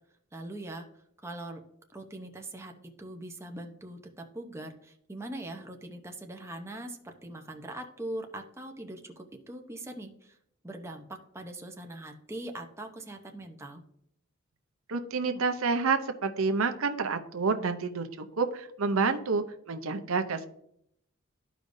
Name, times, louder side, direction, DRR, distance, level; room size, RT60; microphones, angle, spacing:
voice 1, 0.3-0.9 1.2-1.6 1.9-10.4 10.6-13.8, right 1 dB, 15° right, 3 dB, 0.8 m, -41 dB
voice 2, 14.9-20.5, right 4 dB, 80° right, 7 dB, 0.7 m, -29 dB
13.5 x 5.0 x 2.6 m, 0.72 s
head